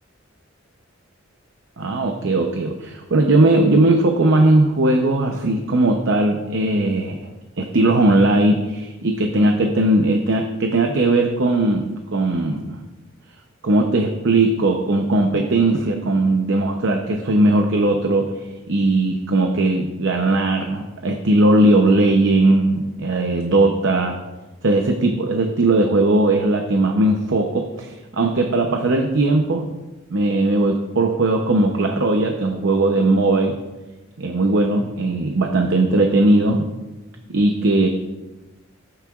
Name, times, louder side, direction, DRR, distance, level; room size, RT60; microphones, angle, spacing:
voice 1, 1.8-7.2 7.6-12.8 13.6-18.3 18.7-24.2 24.6-29.7 30.1-33.6 34.2-36.7 37.3-37.9, right 2 dB, 65° right, 3 dB, 0.8 m, -18 dB
14.0 x 8.8 x 2.4 m, 1.1 s
head